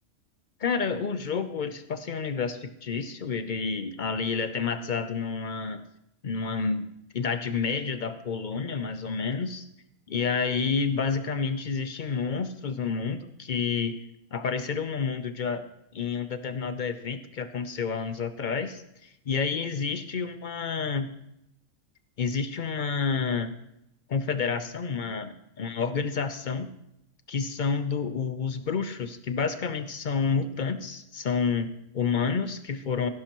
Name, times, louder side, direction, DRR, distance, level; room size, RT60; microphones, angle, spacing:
voice 1, 0.6-5.8 6.2-9.7 10.1-14.0 14.3-15.6 15.9-21.1 22.2-23.6 24.1-26.7 27.3-33.1, left 5 dB, 55° left, 11 dB, 0.5 m, -29 dB
16.5 x 10.5 x 3.0 m, 0.81 s
omnidirectional pair, 1.5 m